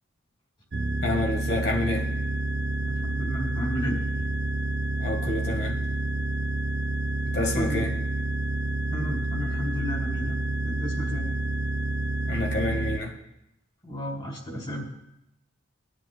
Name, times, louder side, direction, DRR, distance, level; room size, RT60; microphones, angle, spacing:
sound 1, 0.7-13.0, right 2 dB, 55° right, 0.5 m, -28 dB
voice 1, 1.0-2.1 5.0-5.8 7.3-7.9 12.3-13.1, left 2 dB, 55° left, 0 dB, 1.5 m, -28 dB
voice 2, 2.8-4.3 7.5-7.8 8.9-10.4 10.6-11.3 13.8-14.9, equal, 25° left, 0 dB, 2.1 m, -33 dB
19.5 x 9.8 x 2.2 m, 0.86 s
head